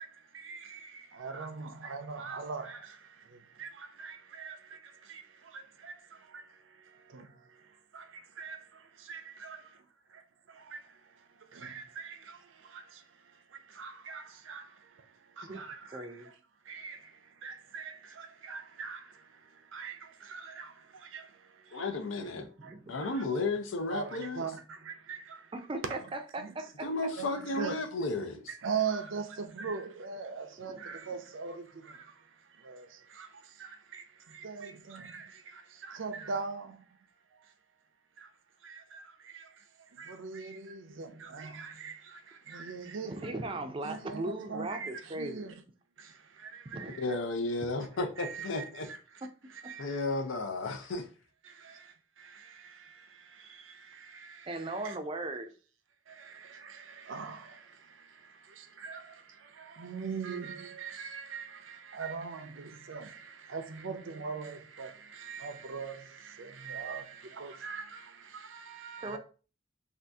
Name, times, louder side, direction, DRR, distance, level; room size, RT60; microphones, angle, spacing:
voice 1, 0.0-9.8 10.1-16.4 16.6-21.9 22.6-23.2 23.9-25.5 25.9-26.0 26.4-26.7 27.1-27.8 28.5-36.8 37.3-37.5 38.2-38.3 38.6-43.5 43.8-45.6 46.0-47.1 48.2-49.2 49.5-50.0 51.4-55.0 56.1-69.2, right 5 dB, 75° right, 0.5 m, -42 dB
voice 2, 15.9-16.3 22.2-23.0 25.5-26.9 30.7-30.8 43.0-45.5 46.7-47.0 54.5-55.5 69.0-69.2, right 2 dB, 25° right, 0.4 m, -38 dB
voice 3, 21.7-22.5 22.9-24.4 26.8-28.4 46.9-48.9 49.8-51.1, left 2 dB, 80° left, 0.6 m, -33 dB
2.7 x 2.4 x 3.4 m
head